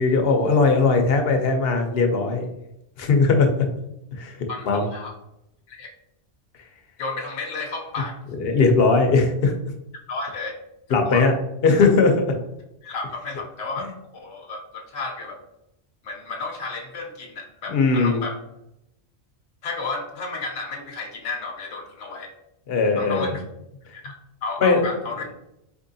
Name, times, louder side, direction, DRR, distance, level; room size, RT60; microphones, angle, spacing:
voice 1, 0.0-2.5 3.0-3.5 4.2-4.4 4.7-4.8 8.4-9.5 10.9-11.3 11.6-12.2 17.7-18.2 22.7-23.3 24.6-24.8, left 4 dB, 60° left, 4 dB, 0.9 m, -19 dB
voice 2, 4.5-5.1 5.7-5.9 7.0-8.2 10.1-10.6 11.0-11.2 12.8-15.4 16.0-18.4 19.6-22.3 23.0-23.4 23.9-24.1 24.4-25.3, left 3 dB, 80° left, 1 dB, 1.0 m, -32 dB
4.3 x 3.6 x 2.7 m, 0.84 s
omnidirectional pair, 1.2 m